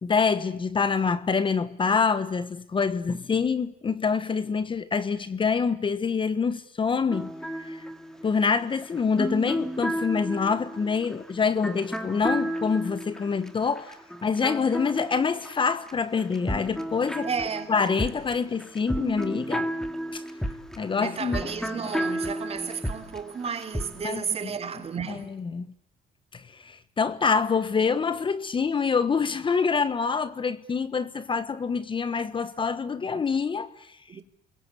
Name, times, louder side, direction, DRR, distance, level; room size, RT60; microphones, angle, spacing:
voice 1, 0.0-7.3 7.6-7.9 8.2-17.3 17.7-19.7 20.1-20.2 20.8-21.5 21.8-21.9 24.0-24.5 25.1-25.7 26.3-34.0, left 5 dB, 30° left, 1.2 m, -26 dB
sound 1, 7.1-15.9 16.2-24.0, equal, 5° left, 2.1 m, -33 dB
voice 2, 17.2-17.7 21.0-25.3 34.1-34.2, right 6 dB, 35° right, 2.8 m, -32 dB
29.0 x 22.5 x 8.4 m
cardioid pair, 110°, 17 cm